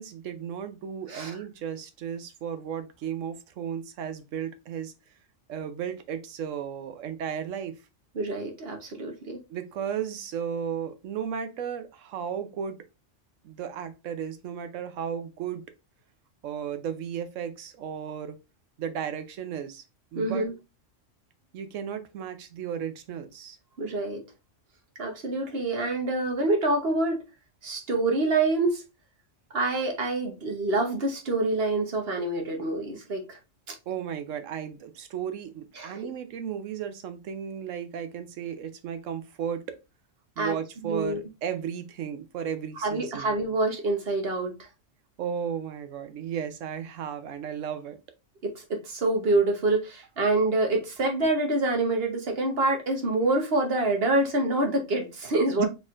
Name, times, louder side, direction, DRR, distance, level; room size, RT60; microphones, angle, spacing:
voice 1, 0.0-4.9 5.5-7.8 9.5-12.8 13.4-15.6 16.4-18.4 18.8-19.8 20.1-20.5 21.5-23.6 33.9-39.8 40.4-43.3 45.2-48.0 55.6-55.7, right 8 dB, 80° right, 1.0 m, -34 dB
voice 2, 8.1-9.4 20.1-20.5 23.8-24.2 25.0-27.2 27.6-28.8 29.5-33.4 35.8-36.0 40.4-40.6 40.8-41.2 42.8-44.6 48.4-55.7, right 2 dB, 55° right, 1.2 m, -26 dB
4.2 x 3.5 x 2.4 m
omnidirectional pair, 1.3 m